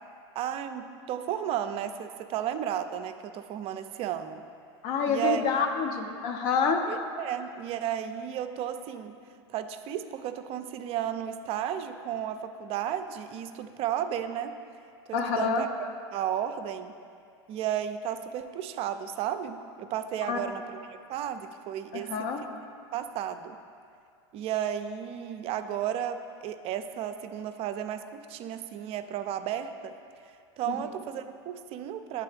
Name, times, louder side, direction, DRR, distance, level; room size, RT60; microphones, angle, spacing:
voice 1, 0.4-4.4 5.1-5.4 6.9-9.1 9.5-14.6 15.1-15.7 16.1-16.9 17.5-22.3 22.9-23.6 24.3-29.9 30.2-32.2, right 10 dB, 40° right, 9 dB, 0.4 m, -33 dB
voice 2, 4.8-6.8 15.1-15.6 20.3-20.4 21.9-22.4, left 5 dB, 60° left, 4 dB, 0.7 m, -27 dB
9.2 x 3.4 x 3.3 m, 2.4 s
hypercardioid pair, 100°, 15 cm